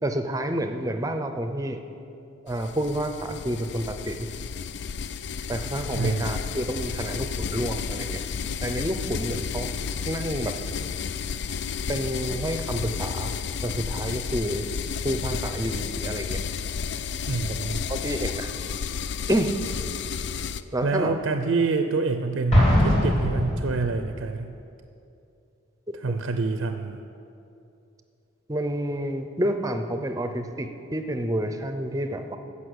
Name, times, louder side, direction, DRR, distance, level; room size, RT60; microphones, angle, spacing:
voice 1, 0.0-1.8 2.4-4.3 5.5-8.2 8.6-9.7 10.1-10.6 11.9-13.3 13.6-14.7 15.0-16.4 17.5-17.6 17.9-18.5 19.3-19.6 20.7-21.1 28.5-32.4, right 1 dB, 15° right, 7 dB, 0.6 m, -29 dB
sound 1, 2.5-20.6, left 6 dB, 55° left, 0.4 m, -32 dB
voice 2, 5.9-6.3 17.3-17.8 20.8-24.5 26.0-27.0, right 3 dB, 80° right, 7 dB, 0.5 m, -27 dB
Explosion, 22.5-24.1, equal, 35° left, 3.3 m, -21 dB
14.5 x 5.6 x 7.9 m, 2.7 s
head